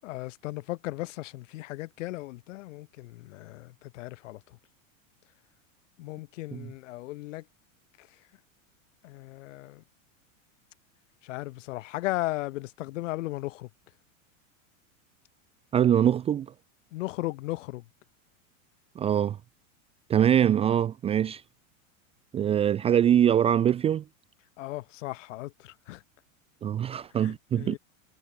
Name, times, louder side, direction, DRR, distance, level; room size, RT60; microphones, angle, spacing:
voice 1, 0.0-4.6 6.0-7.5 8.0-8.3 9.0-9.8 11.2-13.7 16.9-17.9 24.6-26.0 27.1-27.8, left 18 dB, 65° left, 7.8 m, -36 dB
voice 2, 15.7-16.5 19.0-19.4 20.1-21.4 22.3-24.0 26.6-27.8, right 10 dB, 15° right, 0.6 m, -23 dB
supercardioid pair, 160°, 40 cm